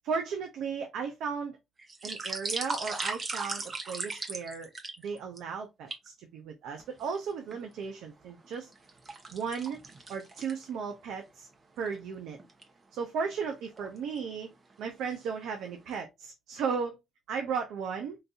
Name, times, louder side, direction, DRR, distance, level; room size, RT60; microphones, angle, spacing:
voice 1, 0.0-1.6 2.0-4.7 5.0-8.7 9.3-9.8 10.1-11.5 11.8-12.4 12.9-14.5 14.8-17.0 17.3-18.2, right 6 dB, 85° right, 0.6 m, -35 dB
sound 1, 1.8-5.4 5.9-6.1 6.8-7.6 8.1-10.9 11.3-11.4 11.8-12.0 12.4-12.6 13.5-14.0 14.5-14.7 15.0-15.6 16.0-16.1, right 3 dB, 35° right, 1.0 m, -38 dB
3.9 x 2.6 x 2.3 m
cardioid pair, 90°, 0 cm